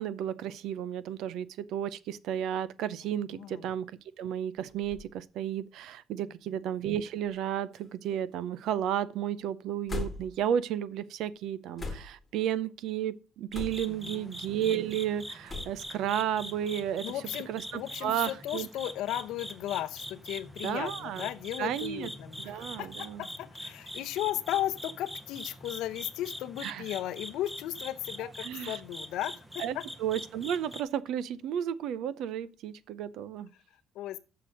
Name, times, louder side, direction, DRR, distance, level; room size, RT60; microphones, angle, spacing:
voice 1, 0.0-3.9 4.2-17.0 17.5-18.7 20.6-21.3 21.6-22.1 22.4-23.2 26.6-26.8 28.4-28.8 29.6-33.5, right 10 dB, 70° right, 0.5 m, -33 dB
voice 2, 3.3-3.7 6.5-6.6 13.9-14.3 17.0-29.9 33.9-34.2, left 13 dB, 80° left, 0.7 m, -36 dB
sound 1, 4.6-5.1 5.9-6.0 7.2-7.5 7.7-8.3 9.9-10.4 11.8-12.3 13.5-14.0 15.5-15.9, left 3 dB, 15° left, 1.3 m, -39 dB
sound 2, 13.5-30.8, equal, 5° right, 0.7 m, -43 dB
6.7 x 5.9 x 6.2 m
cardioid pair, 180°, 0 cm